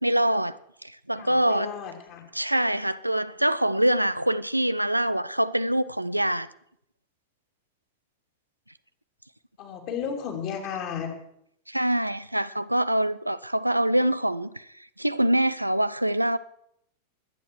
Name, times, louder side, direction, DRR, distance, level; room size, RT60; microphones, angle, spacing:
voice 1, 0.0-1.7 2.3-6.5 11.7-14.5 15.0-16.4, right 1 dB, 85° right, 0.5 m, -24 dB
voice 2, 1.2-2.2 9.6-11.1, left 7 dB, 40° left, 3.4 m, -33 dB
22.0 x 9.1 x 4.7 m
figure-of-eight pair, 90°, 0 cm